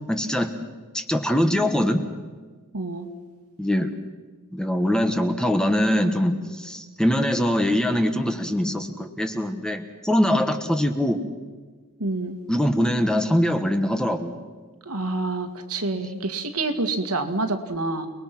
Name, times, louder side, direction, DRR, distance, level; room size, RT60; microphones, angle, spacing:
voice 1, 0.1-0.5 0.9-2.0 3.6-3.9 4.5-11.2 12.5-14.3 15.9-16.1, equal, 5° left, 7 dB, 1.3 m, -23 dB
voice 2, 2.7-3.1 12.0-12.4 14.9-18.1, right 2 dB, 80° right, 6 dB, 2.1 m, -27 dB
29.5 x 20.5 x 6.1 m, 1.4 s
head